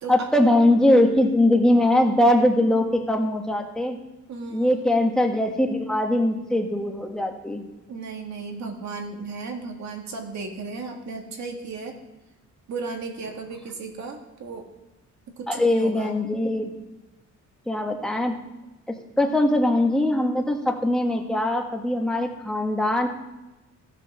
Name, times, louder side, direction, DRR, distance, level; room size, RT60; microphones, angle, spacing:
voice 1, 0.1-4.0 4.5-7.6 15.5-16.7 17.7-18.3 19.2-23.1, left 1 dB, ahead, 2 dB, 1.5 m, -21 dB
voice 2, 4.3-4.9 7.9-12.0 12.7-14.7 15.4-16.2 19.2-19.6, right 4 dB, 65° right, 2 dB, 2.2 m, -35 dB
15.5 x 7.4 x 6.3 m, 1.0 s
cardioid pair, 155°, 30 cm